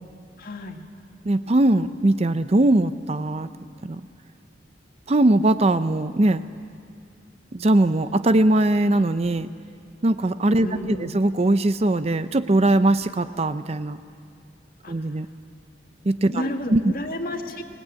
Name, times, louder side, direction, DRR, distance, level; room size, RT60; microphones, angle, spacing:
voice 1, 0.4-0.8 10.6-11.1 14.8-15.1 16.3-17.6, left 1 dB, 50° left, 4 dB, 2.0 m, -31 dB
voice 2, 1.2-3.5 3.8-4.0 5.1-6.4 7.5-9.5 10.0-14.0 14.9-15.3 16.0-16.8, right 1 dB, 35° right, 12 dB, 0.5 m, -20 dB
24.5 x 19.5 x 8.7 m, 2.2 s
head